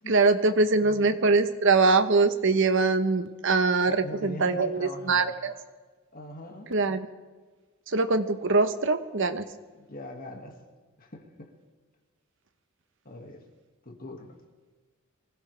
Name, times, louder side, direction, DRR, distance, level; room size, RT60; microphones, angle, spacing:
voice 1, 0.1-5.5 6.7-7.1 7.9-9.4, right 3 dB, 60° right, 10 dB, 1.1 m, -23 dB
voice 2, 0.7-1.2 3.8-5.4 6.1-6.7 9.7-10.6 11.0-11.5 13.0-13.4 13.8-14.4, left 1 dB, 45° left, 3 dB, 2.1 m, -42 dB
24.0 x 16.5 x 3.4 m, 1.4 s
head